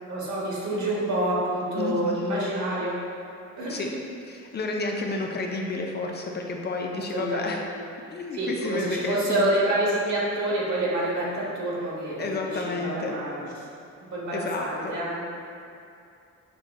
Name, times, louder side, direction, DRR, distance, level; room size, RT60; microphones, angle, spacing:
voice 1, 0.1-3.0 3.6-4.0 6.9-7.6 8.3-13.5 14.1-15.2, right 1 dB, 70° right, -6 dB, 1.3 m, -27 dB
voice 2, 1.7-2.4 3.7-3.9 4.3-7.6 8.1-9.5 12.2-13.1 14.3-14.9, left 3 dB, 35° left, 0 dB, 0.5 m, -31 dB
6.4 x 3.2 x 2.2 m, 2.6 s
cardioid pair, 90°, 30 cm